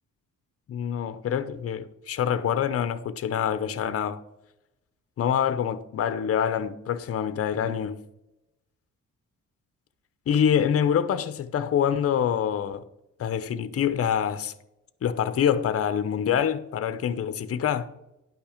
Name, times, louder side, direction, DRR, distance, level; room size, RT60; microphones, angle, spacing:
voice 1, 0.7-4.2 5.2-8.1 10.3-12.8 13.2-14.5 15.0-17.9, left 8 dB, 45° left, 0.7 m, -26 dB
10.5 x 5.8 x 5.0 m
cardioid pair, 140°, 32 cm